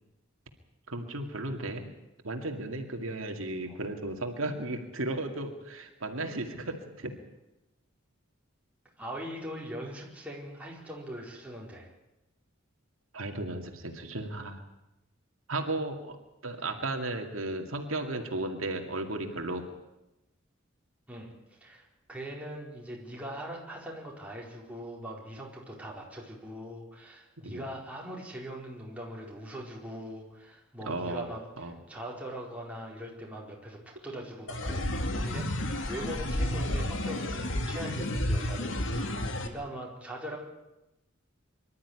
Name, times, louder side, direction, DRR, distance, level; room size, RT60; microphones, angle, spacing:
voice 1, 0.9-1.9 2.2-7.1 13.1-14.6 15.5-16.2 16.4-19.6 27.4-27.6 30.8-31.3 31.6-31.8, right 2 dB, 80° right, 4 dB, 2.3 m, -34 dB
voice 2, 9.0-11.9 21.1-21.3 21.6-31.4 31.9-40.4, right 1 dB, 5° right, -3 dB, 4.6 m, -41 dB
sound 1, 34.5-39.5, left 1 dB, 65° left, 2.1 m, -31 dB
24.0 x 12.5 x 9.7 m, 0.96 s
head